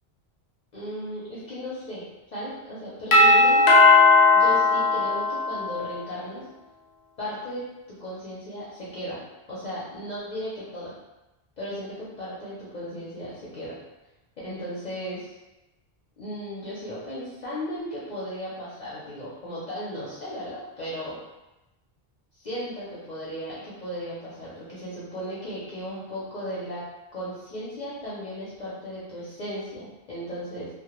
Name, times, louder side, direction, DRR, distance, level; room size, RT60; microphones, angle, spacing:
voice 1, 0.7-3.8 4.3-6.4 7.2-7.6 8.0-9.2 9.5-10.9 11.6-13.8 14.4-15.3 16.2-21.2 22.3-26.8 27.1-30.7, equal, 50° left, -8 dB, 0.6 m, -35 dB
Doorbell, 3.1-5.9, left 3 dB, 80° left, 0.8 m, -17 dB
2.1 x 2.1 x 2.9 m, 0.99 s
omnidirectional pair, 1.1 m